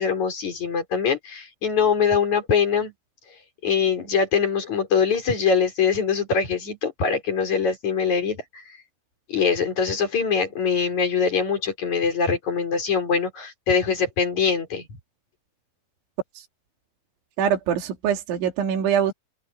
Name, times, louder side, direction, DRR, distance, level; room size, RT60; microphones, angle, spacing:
voice 1, 0.0-2.9 3.6-8.6 9.3-14.9, left 6 dB, 40° left, 6.1 m, -23 dB
voice 2, 17.4-19.1, right 8 dB, 75° right, 5.3 m, -23 dB
open air
omnidirectional pair, 5.4 m